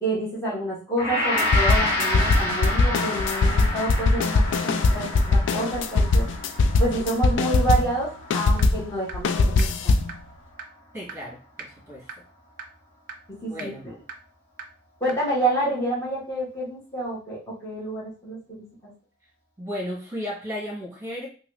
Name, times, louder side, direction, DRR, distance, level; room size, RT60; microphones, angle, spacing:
voice 1, 0.0-6.2 6.8-10.1 13.3-13.9 15.0-18.6, right 1 dB, 20° left, -9 dB, 1.1 m, -28 dB
Gong, 1.0-10.2, left 1 dB, 50° left, 1.5 m, -30 dB
sound 1, 1.4-8.0 8.3-10.2, left 3 dB, 75° left, 0.3 m, -21 dB
sound 2, 8.6-8.7 9.1-9.2 9.6-9.7 10.1-10.2 10.6-10.7 11.1-11.2 11.6-11.7 12.1-12.2 12.6-12.7 13.1-13.2 13.6-13.7 14.1-14.2 14.6-14.7 15.1-15.2, right 5 dB, 45° right, 0.4 m, -36 dB
voice 2, 10.9-12.1 13.4-13.9 19.6-21.3, equal, 15° right, -4 dB, 1.3 m, -34 dB
3.0 x 2.4 x 3.0 m, 0.38 s
head